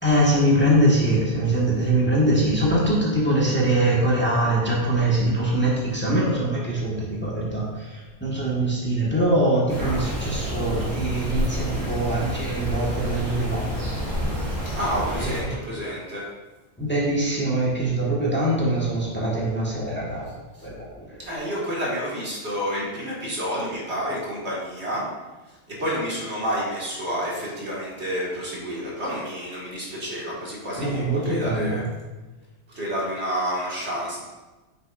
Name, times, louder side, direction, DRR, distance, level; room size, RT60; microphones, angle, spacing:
voice 1, 0.0-13.7 15.2-15.5 16.8-20.3 20.6-21.2 30.8-31.8, right 1 dB, 10° left, -6 dB, 1.6 m, -23 dB
sound 1, 9.7-15.4, equal, 35° right, 2.2 m, -28 dB
voice 2, 14.7-16.3 20.6-20.7 21.2-25.1 25.7-31.8 32.7-34.2, equal, 65° right, -5 dB, 2.3 m, -29 dB
8.9 x 6.6 x 2.6 m, 1.2 s
omnidirectional pair, 1.2 m